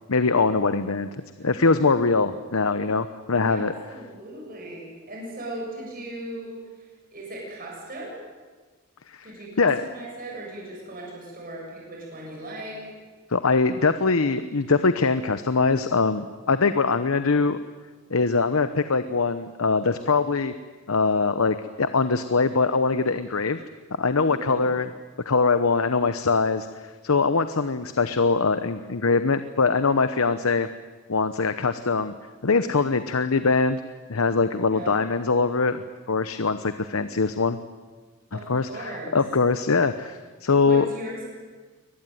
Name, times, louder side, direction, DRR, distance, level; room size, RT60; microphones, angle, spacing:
voice 1, 0.1-1.1 1.4-3.7 9.1-9.3 9.6-9.8 13.3-17.6 18.1-20.5 20.9-23.6 24.0-24.9 25.2-30.7 31.1-32.1 32.4-33.8 34.1-37.6 38.3-40.9, left 4 dB, 75° left, 11 dB, 0.9 m, -22 dB
voice 2, 1.4-2.2 3.5-8.2 9.2-12.8 24.3-24.7 34.5-35.0 38.3-39.2 40.6-41.3, right 1 dB, 40° right, -2 dB, 7.1 m, -38 dB
23.5 x 20.0 x 9.4 m, 1.4 s
head